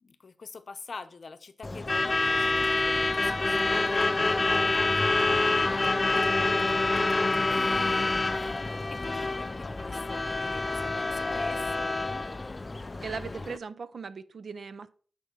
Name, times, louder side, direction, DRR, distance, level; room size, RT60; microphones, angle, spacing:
voice 1, 0.0-5.9 7.5-8.5 8.9-12.0 13.4-13.5, left 4 dB, 50° left, 0.7 m, -45 dB
Truck / Alarm, 1.6-13.6, left 2 dB, 25° left, 0.3 m, -27 dB
voice 2, 13.0-14.9, right 5 dB, 55° right, 0.5 m, -38 dB
9.0 x 5.2 x 4.7 m
wide cardioid pair, 125°, 0 cm